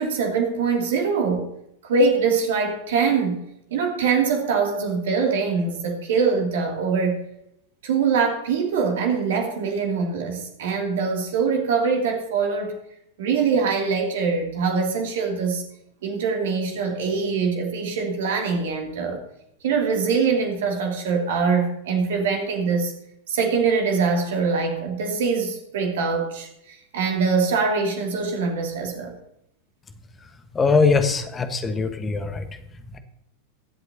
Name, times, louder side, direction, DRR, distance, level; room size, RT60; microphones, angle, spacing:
voice 1, 0.0-1.5 1.8-3.4 3.7-7.2 7.8-12.8 13.2-15.6 16.0-19.2 19.6-22.9 23.3-29.1, right 5 dB, 55° right, 2 dB, 2.6 m, -23 dB
voice 2, 30.5-32.4, left 4 dB, 20° left, 9 dB, 1.3 m, -21 dB
22.0 x 8.0 x 2.8 m, 0.79 s
figure-of-eight pair, 90°, 0 cm